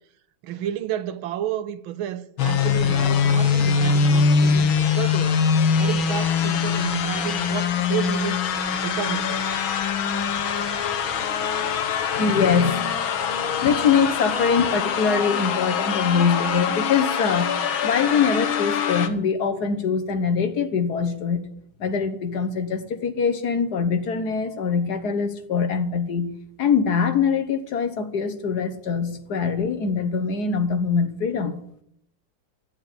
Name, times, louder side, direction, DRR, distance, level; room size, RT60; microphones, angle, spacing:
voice 1, 0.4-5.4 5.8-8.4 8.7-9.7, right 11 dB, 80° right, 1.6 m, -31 dB
sound 1, 2.4-19.1, left 6 dB, 75° left, 1.9 m, -23 dB
voice 2, 12.1-13.0 13.3-17.5 17.8-21.4 21.8-26.3 26.6-31.6, left 6 dB, 55° left, 1.5 m, -23 dB
12.5 x 8.2 x 9.1 m
omnidirectional pair, 2.2 m